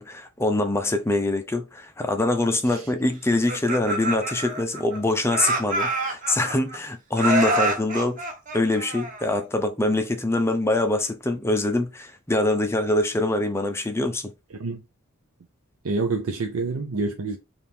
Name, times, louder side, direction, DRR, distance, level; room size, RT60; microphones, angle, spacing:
voice 1, 0.0-8.2 8.5-14.3, left 2 dB, 10° left, 0.5 m, -24 dB
Laughter, 3.3-5.0 5.3-6.8 7.2-9.4, right 2 dB, 35° right, 0.8 m, -27 dB
voice 2, 14.5-14.8 15.8-17.4, right 3 dB, 70° right, 0.5 m, -27 dB
3.5 x 2.6 x 4.3 m
head